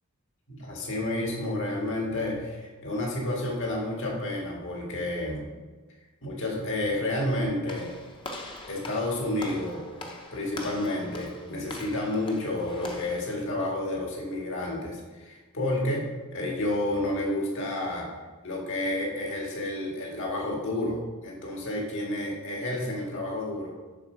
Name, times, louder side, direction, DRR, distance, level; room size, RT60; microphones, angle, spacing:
voice 1, 0.5-5.4 6.2-7.9 8.7-9.8 10.3-18.1 18.4-23.7, left 1 dB, 60° left, -2 dB, 2.0 m, -30 dB
Walk footsteps / Slam, 7.7-13.2, left 1 dB, 20° left, 0.9 m, -42 dB
7.4 x 4.8 x 6.3 m, 1.3 s
head